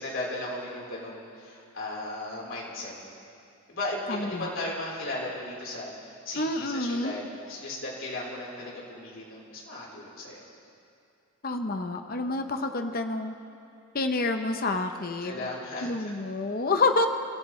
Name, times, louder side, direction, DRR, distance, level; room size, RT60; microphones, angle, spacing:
voice 1, 0.0-2.9 3.7-5.9 6.2-10.4 15.2-16.1, left 2 dB, 65° left, -4 dB, 4.1 m, -36 dB
voice 2, 4.1-4.5 6.4-7.2 11.4-13.3 13.9-15.4 15.8-17.1, left 3 dB, 45° left, 6 dB, 0.8 m, -28 dB
29.0 x 14.5 x 3.3 m, 2.5 s
head